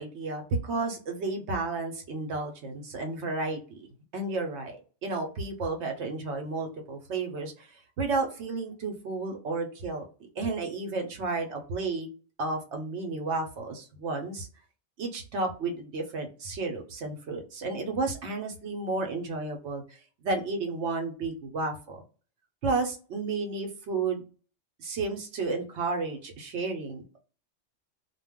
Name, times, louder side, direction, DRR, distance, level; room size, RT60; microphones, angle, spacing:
voice 1, 0.0-3.9 4.1-7.7 8.0-10.1 10.4-12.1 12.4-14.5 15.0-22.0 22.6-24.2 24.8-27.2, right 3 dB, 65° right, 3 dB, 1.0 m, -32 dB
2.3 x 2.2 x 3.5 m, 0.37 s
omnidirectional pair, 1.3 m